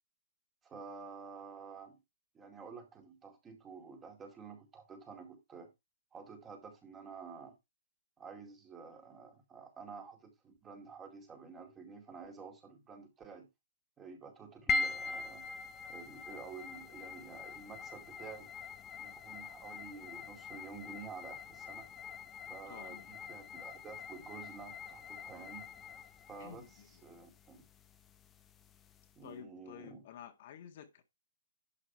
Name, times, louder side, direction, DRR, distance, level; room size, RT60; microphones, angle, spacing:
voice 1, 0.6-2.0 2.3-5.7 6.1-7.6 8.2-13.5 14.0-15.4 15.9-18.5 19.0-21.9 22.5-25.7 26.3-27.6 29.2-30.0, right 5 dB, 15° right, 2.3 m, -50 dB
sound 1, 14.7-29.2, left 4 dB, 15° left, 0.9 m, -43 dB
voice 2, 22.5-23.1 26.4-27.2 29.2-31.0, left 8 dB, 50° left, 1.8 m, -52 dB
11.5 x 5.0 x 4.6 m
hypercardioid pair, 155°, 0 cm